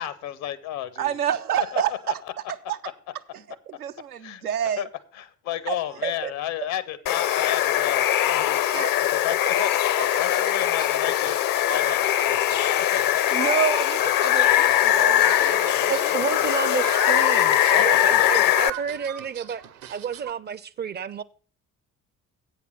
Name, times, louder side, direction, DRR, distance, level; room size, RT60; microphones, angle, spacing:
voice 1, 0.0-1.2 1.6-1.8 4.2-4.4 4.8-4.9 5.2-8.6 9.0-13.2 17.7-18.6, left 12 dB, 70° left, 0.9 m, -32 dB
voice 2, 1.0-2.2 2.5-2.8 3.3-4.9 5.7-6.3 8.7-8.9 13.3-16.4, right 9 dB, 90° right, 0.5 m, -29 dB
Water, 7.1-18.7, left 12 dB, 50° left, 0.6 m, -21 dB
sound 1, 9.6-20.3, right 13 dB, 70° right, 0.8 m, -40 dB
voice 3, 15.9-19.6 19.9-21.2, right 7 dB, 25° right, 0.4 m, -30 dB
8.3 x 5.9 x 6.9 m
figure-of-eight pair, 45°, 45 cm